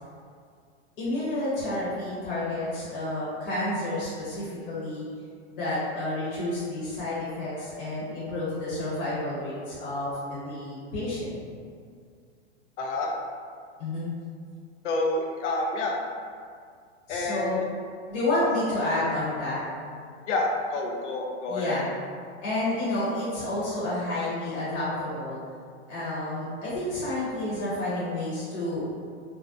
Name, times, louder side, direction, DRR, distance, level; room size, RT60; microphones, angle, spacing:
voice 1, 1.0-5.0 5.5-11.4 13.8-14.1 17.1-17.6 18.1-19.6 21.5-21.9 22.4-25.4 25.9-28.8, left 1 dB, 50° left, -10 dB, 1.0 m, -30 dB
voice 2, 12.8-13.1 14.8-16.0 17.1-17.5 20.3-21.8, left 2 dB, 80° left, 1 dB, 0.6 m, -28 dB
2.3 x 2.1 x 2.5 m, 2.2 s
hypercardioid pair, 140°, 35 cm